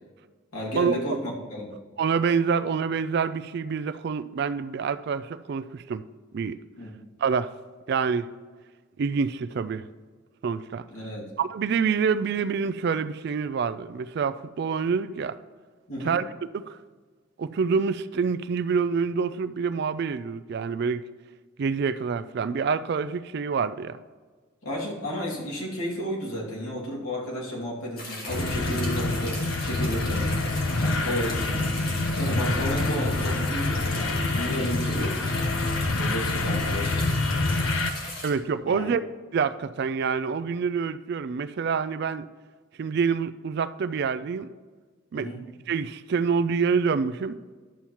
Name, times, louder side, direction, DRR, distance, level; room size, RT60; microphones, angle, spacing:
voice 1, 0.5-1.7 6.8-6.9 10.9-11.3 15.9-16.2 24.6-30.4 30.8-31.7 32.2-35.5 36.0-37.0 38.7-38.9 45.1-45.4, equal, 90° left, -3 dB, 2.3 m, -32 dB
voice 2, 2.0-6.0 6.3-6.6 7.2-7.5 7.9-8.3 9.0-9.9 10.4-10.8 11.4-15.4 16.0-16.3 16.5-16.8 17.4-21.0 21.6-24.0 38.2-39.0 39.3-42.3 42.8-44.5 45.1-45.3 45.7-47.4, right 5 dB, 50° right, 13 dB, 0.3 m, -26 dB
sound 1, 28.0-38.3, left 2 dB, 45° left, 1.8 m, -37 dB
sound 2, 28.3-37.9, left 2 dB, 70° left, 0.7 m, -26 dB
11.0 x 7.1 x 3.0 m, 1.5 s
head